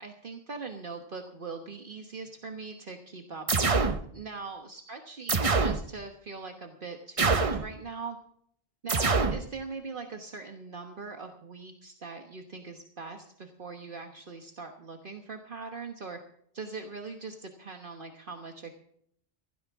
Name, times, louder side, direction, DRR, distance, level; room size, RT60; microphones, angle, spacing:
voice 1, 0.0-8.2 8.8-16.2 16.5-18.8, right 4 dB, 55° right, 4 dB, 1.4 m, -41 dB
sound 1, 3.5-4.0 5.3-5.8 7.2-7.7 8.9-9.4, right 4 dB, 35° right, 0.9 m, -25 dB
16.5 x 16.0 x 3.6 m, 0.68 s
omnidirectional pair, 1.0 m